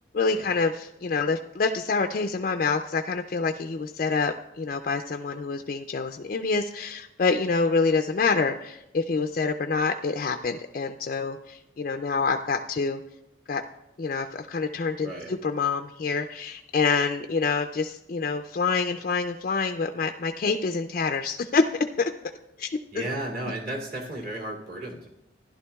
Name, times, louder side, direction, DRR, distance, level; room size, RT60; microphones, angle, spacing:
voice 1, 0.1-13.0 13.5-13.6 14.0-15.1 15.4-22.1 22.6-22.7 22.9-23.1, left 4 dB, 45° left, 5 dB, 0.3 m, -26 dB
voice 2, 15.0-15.4 22.9-25.1, right 1 dB, 50° right, -3 dB, 2.3 m, -34 dB
15.5 x 11.0 x 2.3 m, 0.90 s
head